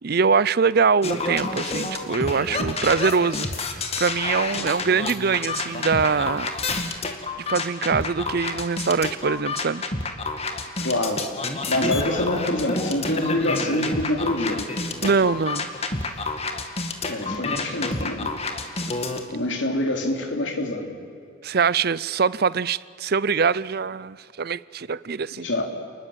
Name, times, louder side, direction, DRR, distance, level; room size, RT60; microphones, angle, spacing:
voice 1, 0.0-6.5 7.4-9.8 15.0-15.7 21.4-25.5, right 5 dB, 55° right, 20 dB, 0.6 m, -23 dB
sound 1, 1.0-19.2, left 3 dB, 30° left, 2.1 m, -29 dB
voice 2, 10.8-11.4 11.6-14.7 17.1-18.3 19.3-21.0 25.3-25.6, left 1 dB, 70° left, 3 dB, 3.5 m, -26 dB
30.0 x 20.0 x 7.5 m, 2.4 s
head